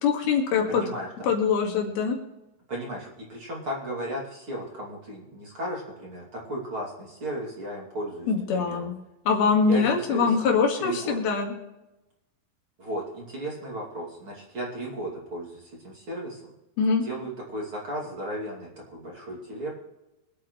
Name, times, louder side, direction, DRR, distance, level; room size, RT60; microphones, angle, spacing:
voice 1, 0.0-0.8 1.2-2.2 8.3-9.0 9.3-11.5 16.8-17.0, left 5 dB, 70° left, 2 dB, 3.6 m, -23 dB
voice 2, 0.7-1.3 2.7-8.9 9.7-9.8 10.1-10.4 10.8-11.2 12.8-16.4 17.0-19.7, right 1 dB, 35° right, -3 dB, 3.0 m, -35 dB
25.0 x 8.6 x 3.1 m, 0.98 s
omnidirectional pair, 4.6 m